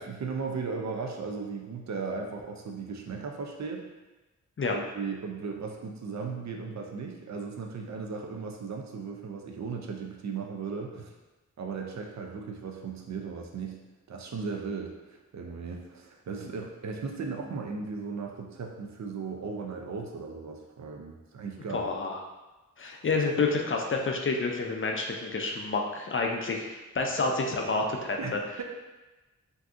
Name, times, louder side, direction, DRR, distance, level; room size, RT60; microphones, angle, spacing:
voice 1, 0.0-3.9 4.7-11.1 11.6-13.8 14.1-21.9 28.2-28.3 28.6-28.7, right 5 dB, 60° right, 1 dB, 0.5 m, -36 dB
voice 2, 21.7-22.2 22.8-28.4, left 3 dB, 40° left, 1 dB, 0.4 m, -29 dB
3.5 x 2.7 x 2.4 m, 1.1 s
wide cardioid pair, 95°, 31 cm